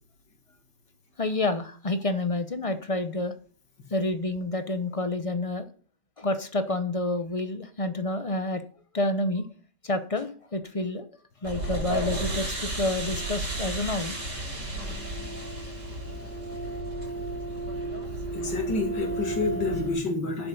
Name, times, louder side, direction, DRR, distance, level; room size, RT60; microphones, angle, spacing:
voice 1, 1.2-3.3 3.9-5.7 6.2-8.6 8.9-9.5 9.8-11.1 11.4-14.2, left 2 dB, 35° left, 10 dB, 0.6 m, -29 dB
sound 1, 11.4-19.9, right 2 dB, 85° right, 7.1 m, -32 dB
voice 2, 14.8-15.4 18.3-20.5, left 3 dB, 85° left, 4 dB, 2.8 m, -30 dB
10.5 x 7.2 x 5.4 m, 0.40 s
omnidirectional pair, 1.8 m